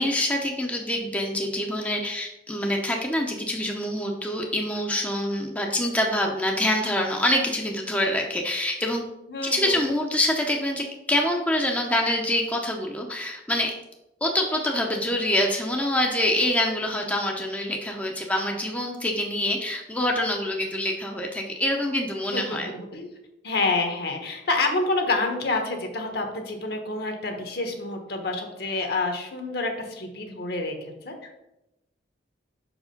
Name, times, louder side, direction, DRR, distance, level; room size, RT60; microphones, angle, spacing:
voice 1, 0.0-9.0 9.4-13.7 14.2-22.7, left 1 dB, 10° left, 1 dB, 0.6 m, -25 dB
voice 2, 9.3-9.8 22.3-23.1 23.4-31.3, left 3 dB, 55° left, 4 dB, 1.2 m, -28 dB
5.9 x 4.9 x 5.2 m, 0.92 s
head